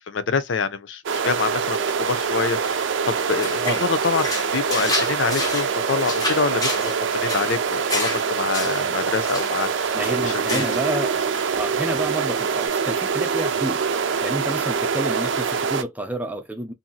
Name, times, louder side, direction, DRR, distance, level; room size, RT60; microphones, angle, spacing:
voice 1, 0.1-9.9 10.2-10.6, left 5 dB, 90° left, 0.5 m, -26 dB
sound 1, 1.1-15.8, right 6 dB, 90° right, 0.5 m, -24 dB
sound 2, 3.1-10.9 11.2-11.6 11.9-12.7, left 1 dB, 20° left, 1.1 m, -31 dB
voice 2, 9.9-11.3 11.6-13.8 14.2-16.7, right 1 dB, 10° right, 0.5 m, -29 dB
2.7 x 2.6 x 2.3 m
head